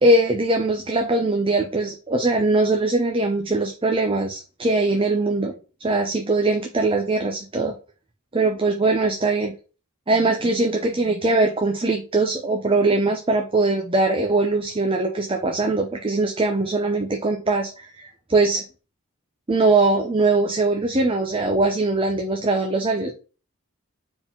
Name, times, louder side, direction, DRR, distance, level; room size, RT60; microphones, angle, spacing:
voice 1, 0.0-7.8 8.3-9.5 10.1-18.6 19.5-23.1, right 2 dB, 25° right, 3 dB, 0.6 m, -21 dB
4.9 x 3.9 x 5.4 m, 0.35 s
head